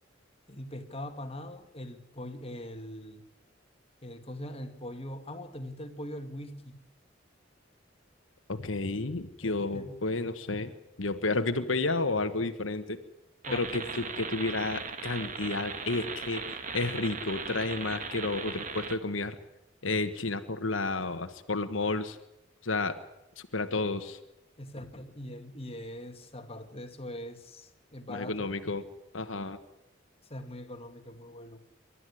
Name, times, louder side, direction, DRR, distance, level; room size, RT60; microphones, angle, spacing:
voice 1, 0.5-3.2 4.0-6.9 9.4-10.0 13.5-13.9 24.6-28.5 30.3-31.6, left 1 dB, 30° left, 7 dB, 2.3 m, -42 dB
voice 2, 8.5-10.7 11.0-13.0 13.5-19.3 19.8-22.2 22.6-23.0 23.5-24.2 28.1-28.8 29.1-29.6, left 3 dB, 80° left, 8 dB, 1.5 m, -31 dB
sound 1, 13.4-19.0, right 5 dB, 40° right, 1.8 m, -38 dB
28.0 x 13.0 x 10.0 m, 0.87 s
head